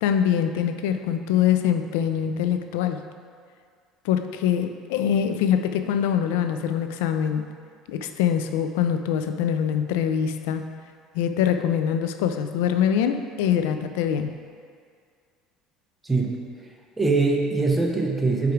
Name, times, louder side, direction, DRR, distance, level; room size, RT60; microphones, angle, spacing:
voice 1, 0.0-3.0 4.0-7.5 7.9-10.7 11.1-14.3, left 9 dB, 90° left, 8 dB, 0.3 m, -24 dB
voice 2, 16.0-16.7 17.0-18.5, right 3 dB, 10° right, 0 dB, 0.8 m, -23 dB
4.9 x 4.7 x 4.6 m, 2.2 s
cardioid pair, 125°, 0 cm